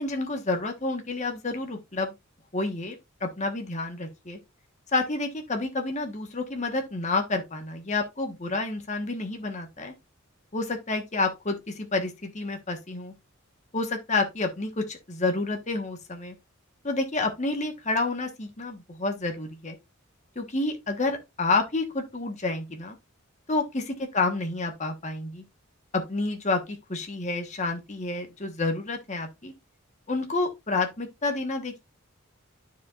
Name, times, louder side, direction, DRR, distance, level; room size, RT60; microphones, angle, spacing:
voice 1, 0.0-2.1 2.5-4.4 4.9-9.9 10.5-13.1 13.7-16.3 16.8-19.8 20.3-23.0 23.5-25.4 25.9-26.6 26.9-29.5 30.1-31.8, left 3 dB, 35° left, 1.3 m, -29 dB
12.5 x 4.9 x 2.5 m
head